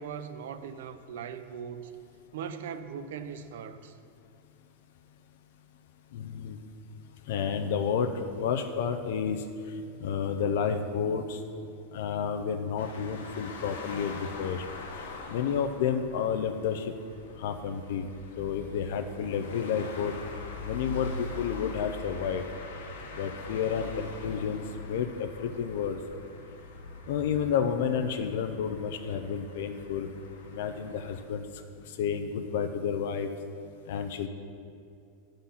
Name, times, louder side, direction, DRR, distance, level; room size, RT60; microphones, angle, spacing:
voice 1, 0.0-1.9 2.3-4.0, right 7 dB, 75° right, 11 dB, 0.5 m, -39 dB
voice 2, 6.1-6.6 7.3-9.4 10.0-11.4 11.9-14.6 15.0-16.9 17.4-18.1 18.4-20.1 20.6-22.4 23.2-26.0 27.1-30.1 30.5-31.4 31.9-33.3 33.9-34.3, left 7 dB, 60° left, 5 dB, 0.5 m, -30 dB
sound 1, 12.8-31.2, left 3 dB, 85° left, 1.0 m, -43 dB
11.5 x 3.9 x 5.6 m, 2.5 s
supercardioid pair, 170°, 0 cm